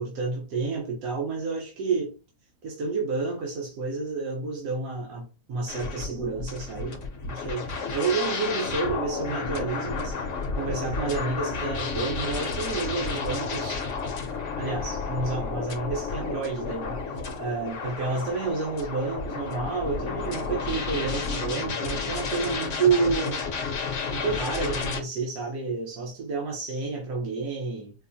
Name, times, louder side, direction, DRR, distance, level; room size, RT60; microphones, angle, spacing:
voice 1, 0.0-2.1 2.6-10.2 10.6-13.9 14.6-23.4 24.1-27.9, right 4 dB, 70° right, 1.3 m, -30 dB
sound 1, 5.7-25.0, left 4 dB, 60° left, 1.0 m, -31 dB
4.6 x 2.1 x 2.6 m
omnidirectional pair, 1.6 m